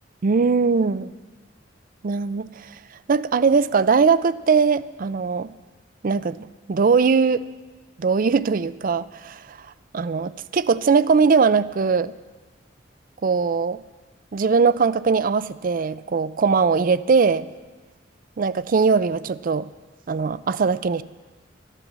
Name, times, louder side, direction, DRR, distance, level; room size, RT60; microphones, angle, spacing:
voice 1, 0.2-1.1 2.0-2.7 3.1-5.5 6.0-7.4 8.0-9.7 9.9-12.1 13.2-13.8 14.3-17.5 18.4-19.7 20.1-21.0, right 5 dB, 50° right, 17 dB, 0.4 m, -20 dB
13.5 x 10.0 x 7.4 m, 1.3 s
head